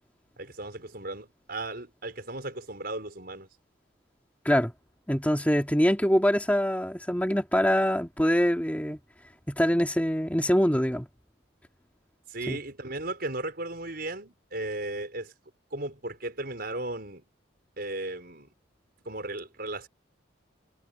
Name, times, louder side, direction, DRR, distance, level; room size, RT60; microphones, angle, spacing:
voice 1, 0.4-3.5 12.3-15.3 15.7-17.2 17.8-18.5 19.0-19.9, right 2 dB, 50° right, 6.1 m, -36 dB
voice 2, 5.1-9.0 9.5-11.1 12.5-12.6, equal, 5° left, 2.6 m, -24 dB
head